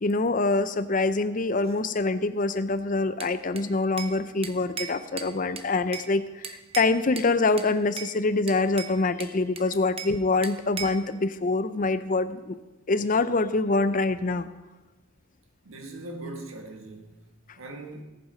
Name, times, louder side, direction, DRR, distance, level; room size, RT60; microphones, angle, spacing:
voice 1, 0.0-12.6 12.9-14.5, left 3 dB, 40° left, 12 dB, 0.6 m, -25 dB
Bell / Glass, 3.2-4.2 4.4-6.1 6.4-7.3 7.6-8.1 8.5-10.2 10.4-11.1, right 6 dB, 25° right, 0.8 m, -38 dB
voice 2, 15.6-17.2 17.6-18.0, right 2 dB, 70° right, 4 dB, 1.6 m, -40 dB
18.0 x 7.2 x 5.2 m, 1.1 s
head